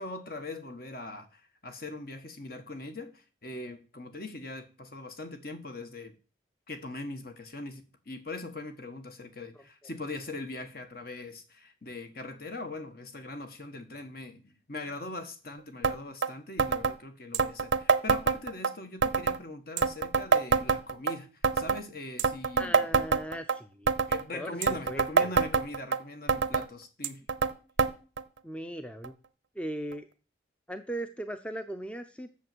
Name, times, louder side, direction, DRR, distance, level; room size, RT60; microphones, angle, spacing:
voice 1, 0.0-6.1 6.7-22.9 24.0-27.2, left 2 dB, 50° left, 1.6 m, -41 dB
sound 1, 15.8-16.0 16.2-16.3 16.6-16.9 17.3-18.7 19.0-19.4 19.8-21.1 21.4-21.8 22.2-23.6 23.9-24.2 24.6-26.0 26.3-26.7 27.0-27.5 27.8-27.9 28.2-28.3 29.0-29.1 29.9-30.0, right 5 dB, 90° right, 0.7 m, -25 dB
voice 2, 22.6-23.9 24.3-24.6 24.9-25.3 28.4-29.1 29.5-30.1 30.7-32.3, right 1 dB, 5° left, 0.6 m, -38 dB
8.3 x 7.0 x 7.9 m
head